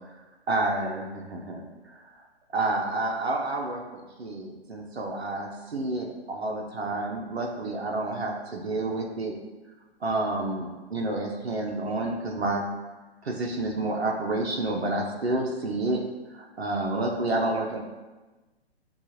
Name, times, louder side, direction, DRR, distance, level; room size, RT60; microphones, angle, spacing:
voice 1, 0.5-2.2 2.5-9.3 10.0-12.6 13.2-16.0 16.3-17.8, right 2 dB, 80° right, 0 dB, 0.8 m, -29 dB
7.1 x 2.5 x 2.8 m, 1.2 s
figure-of-eight pair, 130°, 31 cm